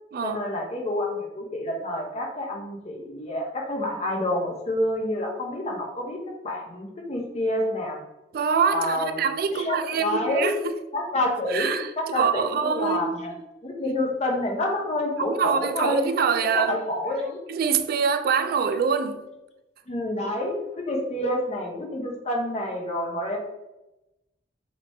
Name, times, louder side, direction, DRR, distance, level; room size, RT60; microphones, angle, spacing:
voice 1, 0.2-6.2 6.4-8.0 8.7-10.5 10.9-11.7 12.0-13.3 13.6-16.1 16.4-17.4 19.9-23.4, left 1 dB, 35° left, 0.8 m, -28 dB
voice 2, 8.3-10.7 11.5-13.2 15.3-16.8 17.5-19.2, right 6 dB, 55° right, 0.3 m, -25 dB
3.0 x 2.9 x 4.2 m
head